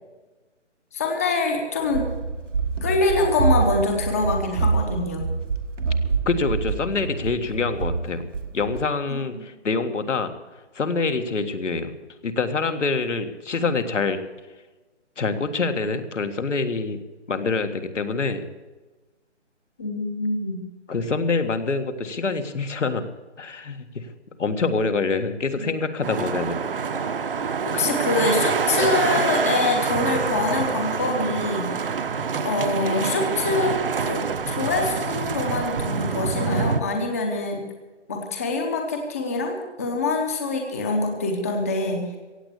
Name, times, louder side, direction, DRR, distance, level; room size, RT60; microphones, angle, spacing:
voice 1, 0.9-2.1 2.8-5.3 9.3-9.4 19.8-20.6 25.5-25.7 27.7-31.7 32.4-37.7 38.1-42.1, left 3 dB, 15° left, 3 dB, 0.8 m, -25 dB
Run, 1.8-8.9, right 4 dB, 85° right, 1.6 m, -26 dB
voice 2, 6.2-8.2 8.5-10.3 10.7-14.2 15.2-17.0 17.3-18.5 20.9-23.0 23.4-24.1 24.4-26.6, left 4 dB, 75° left, 7 dB, 1.8 m, -25 dB
sound 1, 26.0-36.8, right 5 dB, 50° right, 1.0 m, -26 dB
16.5 x 8.5 x 8.4 m, 1.2 s
hypercardioid pair, 165°, 36 cm